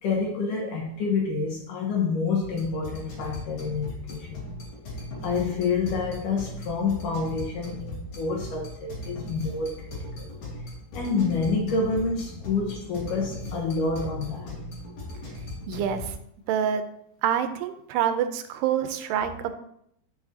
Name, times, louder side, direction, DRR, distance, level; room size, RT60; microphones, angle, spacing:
voice 1, 0.0-4.4 5.2-10.3 10.9-14.6, left 4 dB, 65° left, 0 dB, 2.3 m, -28 dB
sound 1, 2.4-16.1, left 1 dB, 50° left, 3.0 m, -38 dB
voice 2, 15.7-16.2 16.5-16.8 17.2-19.5, right 9 dB, 90° right, 9 dB, 2.8 m, -26 dB
11.0 x 6.4 x 2.8 m, 0.73 s
omnidirectional pair, 4.6 m